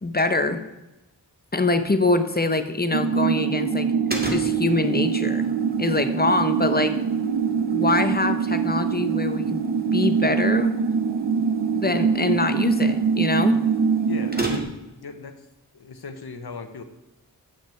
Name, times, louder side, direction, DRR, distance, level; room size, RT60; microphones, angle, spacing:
voice 1, 0.0-0.6 1.5-3.9 4.3-5.5 5.8-7.0 7.7-9.6 9.9-10.8 11.3-11.4 11.7-13.6, left 2 dB, 25° left, 9 dB, 0.8 m, -24 dB
sound 1, 2.9-14.6, right 6 dB, 65° right, 0.7 m, -24 dB
sound 2, 4.1-15.0, right 2 dB, 25° right, 1.7 m, -38 dB
voice 2, 14.1-15.5 15.7-16.8, left 4 dB, 70° left, 8 dB, 1.0 m, -37 dB
8.9 x 6.0 x 4.4 m, 0.97 s
wide cardioid pair, 50°, 39 cm